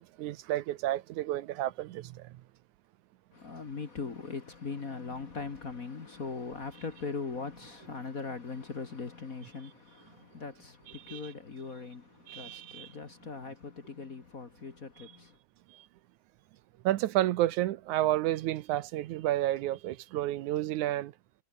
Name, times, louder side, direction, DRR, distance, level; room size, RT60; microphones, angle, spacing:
voice 1, 0.2-2.3 11.1-11.2 12.3-12.9 16.8-21.1, right 14 dB, 75° right, 1.9 m, -30 dB
voice 2, 3.3-15.4, left 4 dB, 40° left, 1.3 m, -40 dB
omnidirectional pair, 4.2 m